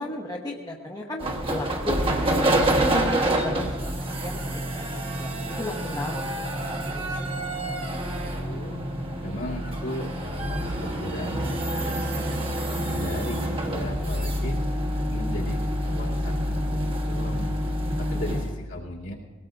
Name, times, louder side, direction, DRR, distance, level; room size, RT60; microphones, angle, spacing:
voice 1, 0.0-2.5 2.9-6.2 6.5-7.1 18.1-18.4, left 1 dB, 20° left, -1 dB, 1.0 m, -35 dB
sound 1, 1.2-18.6, right 1 dB, 25° right, 1.2 m, -27 dB
voice 2, 8.2-8.8 9.2-12.4 12.9-14.6 15.1-17.7 18.0-19.1, left 1 dB, 65° left, -4 dB, 2.7 m, -37 dB
22.0 x 18.0 x 2.5 m, 1.3 s
head